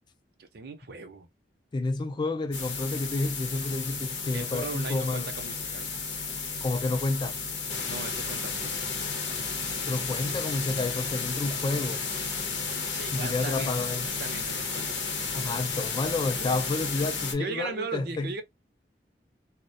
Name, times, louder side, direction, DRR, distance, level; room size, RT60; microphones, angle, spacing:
voice 1, 0.4-1.3 4.3-5.9 7.8-8.8 12.9-13.8 14.2-15.1 17.4-18.4, right 4 dB, 60° right, 0.6 m, -38 dB
voice 2, 1.7-5.3 6.6-7.4 9.9-12.0 13.1-14.1 15.3-18.3, left 3 dB, 25° left, 0.3 m, -30 dB
sound 1, 2.5-17.3, left 4 dB, 90° left, 0.8 m, -33 dB
2.3 x 2.1 x 2.6 m
head